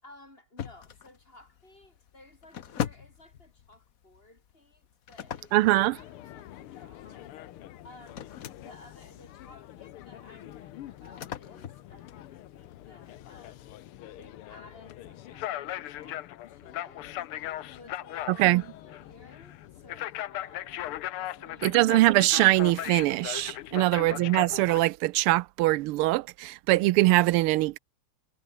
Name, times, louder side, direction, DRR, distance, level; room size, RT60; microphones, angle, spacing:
voice 1, 0.0-5.6 6.3-7.3 7.8-13.7 14.2-17.3 17.7-18.5 18.8-21.8 23.7-24.2, left 2 dB, 25° left, 6.4 m, -55 dB
sound 1, 0.6-13.2, left 9 dB, 50° left, 1.2 m, -42 dB
voice 2, 5.5-6.0 18.4-18.6 21.6-27.8, right 18 dB, 85° right, 1.5 m, -22 dB
sound 2, 5.8-24.8, left 13 dB, 80° left, 1.8 m, -40 dB
omnidirectional pair, 2.4 m